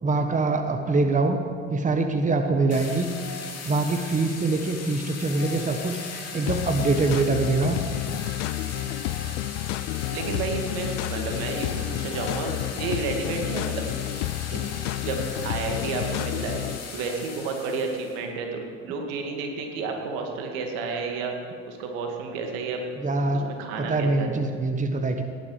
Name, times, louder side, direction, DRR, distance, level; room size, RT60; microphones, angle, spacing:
voice 1, 0.0-1.4 1.7-3.1 3.6-6.0 6.3-7.8 23.0-23.5 23.8-25.2, right 3 dB, 20° right, 6 dB, 1.2 m, -24 dB
sound 1, 2.7-18.2, left 5 dB, 40° left, 2.6 m, -38 dB
sound 2, 6.5-16.8, left 15 dB, 70° left, 0.5 m, -30 dB
voice 2, 9.9-14.0 14.5-14.7 15.0-16.6 16.9-21.3 21.7-22.8 23.3-24.3, right 4 dB, 70° right, 2 dB, 2.2 m, -31 dB
17.0 x 11.0 x 5.0 m, 2.1 s
hypercardioid pair, 65°, 37 cm